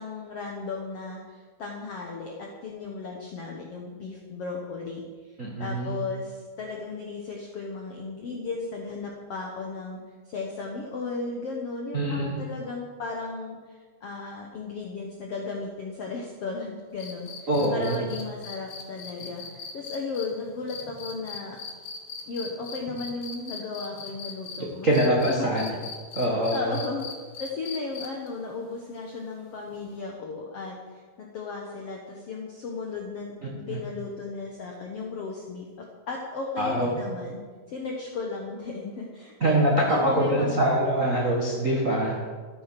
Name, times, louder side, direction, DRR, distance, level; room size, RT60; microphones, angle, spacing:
voice 1, 0.0-10.0 10.2-21.6 22.3-25.5 26.5-27.0 27.4-37.4 37.7-40.6, left 4 dB, 70° left, 0 dB, 1.4 m, -35 dB
voice 2, 5.4-6.0 11.9-12.4 17.5-18.0 24.8-25.7 26.1-26.7 36.6-36.9 39.4-42.1, right 1 dB, 65° right, -3 dB, 0.7 m, -24 dB
sound 1, 17.0-24.6 24.9-28.3 29.9-30.0, left 5 dB, 55° left, 2.0 m, -39 dB
13.5 x 9.4 x 5.9 m, 1.5 s
omnidirectional pair, 4.5 m